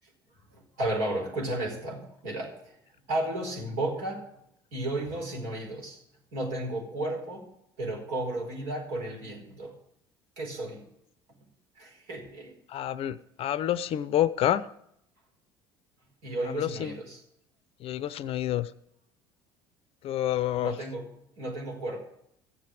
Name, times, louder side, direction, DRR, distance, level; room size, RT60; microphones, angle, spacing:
voice 1, 0.5-2.8 3.1-4.4 4.7-6.0 6.3-7.5 7.8-9.7 10.4-10.9 11.8-12.5 16.2-17.2 20.6-22.0, right 1 dB, 65° right, -1 dB, 4.7 m, -33 dB
voice 2, 12.7-14.7 16.6-16.9 17.8-18.7 20.0-20.7, left 12 dB, 50° left, 17 dB, 0.6 m, -28 dB
14.0 x 7.6 x 7.6 m, 0.74 s
hypercardioid pair, 60°, 13 cm